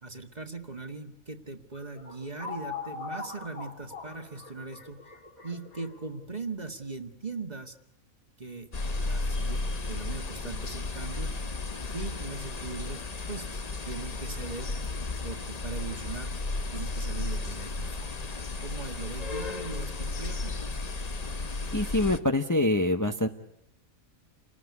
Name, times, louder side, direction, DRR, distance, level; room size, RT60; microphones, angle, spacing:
voice 1, 0.0-5.0 5.4-7.8 8.4-9.6 9.9-11.3 11.9-13.5 13.8-14.7 15.2-16.4 16.7-18.1 18.6-20.5, right 3 dB, 30° right, 6 dB, 1.9 m, -39 dB
sound 1, 1.8-6.4, left 4 dB, 85° left, 3.3 m, -41 dB
sound 2, 8.7-22.2, left 3 dB, 30° left, 1.1 m, -34 dB
voice 2, 21.7-23.3, left 1 dB, 15° left, 5 dB, 1.2 m, -25 dB
29.5 x 19.5 x 9.7 m, 0.79 s
omnidirectional pair, 1.4 m